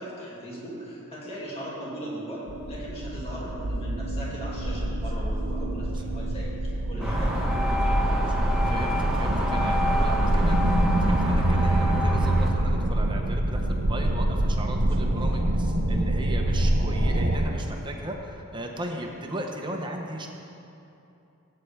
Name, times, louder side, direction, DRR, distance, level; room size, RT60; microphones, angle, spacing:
voice 1, 0.0-7.8, equal, 25° left, -6 dB, 2.3 m, -38 dB
sound 1, 2.5-17.4, right 1 dB, 60° right, 0.9 m, -26 dB
sound 2, 7.0-12.5, equal, 5° right, 1.2 m, -25 dB
voice 2, 8.7-20.3, right 1 dB, 20° right, 2 dB, 0.9 m, -36 dB
17.5 x 8.6 x 3.4 m, 2.8 s
head